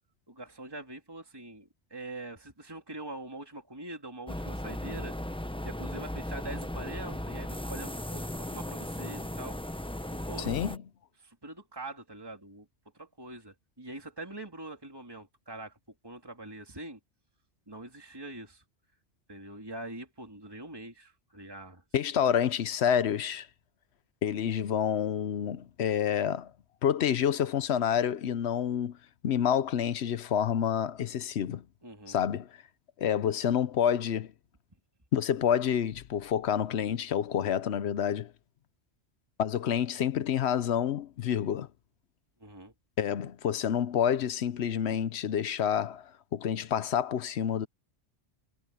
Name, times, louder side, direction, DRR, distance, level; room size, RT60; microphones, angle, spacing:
voice 1, 0.3-5.1 5.6-9.6 10.3-10.5 11.2-12.7 13.0-15.8 16.0-17.0 17.7-18.6 19.3-21.8 31.8-32.2 42.4-42.7, right 2 dB, 20° right, 2.9 m, -43 dB
sound 1, 4.3-10.8, left 1 dB, 5° left, 0.7 m, -37 dB
voice 2, 10.4-10.8 21.9-23.5 24.2-26.5 26.8-29.0 29.2-31.6 32.1-32.5 33.0-34.3 35.1-38.3 39.4-41.7 43.0-47.7, left 9 dB, 70° left, 0.9 m, -28 dB
omnidirectional pair, 1.2 m